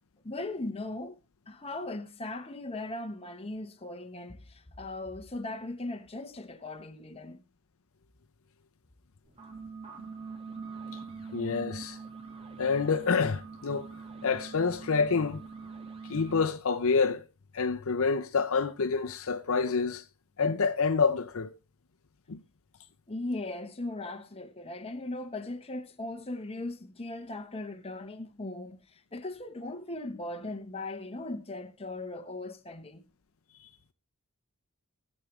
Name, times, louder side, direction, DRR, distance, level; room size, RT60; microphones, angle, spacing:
voice 1, 0.2-1.2 1.5-7.4 23.1-33.0, left 2 dB, 25° left, 1.1 m, -38 dB
sound 1, 9.2-16.5, right 4 dB, 25° right, 2.0 m, -43 dB
voice 2, 11.3-12.0 12.6-13.9 14.2-15.4 16.0-17.2 17.5-20.0 20.4-21.6 22.3-22.4 33.6-33.7, left 5 dB, 65° left, 0.7 m, -27 dB
19.5 x 7.5 x 3.2 m
head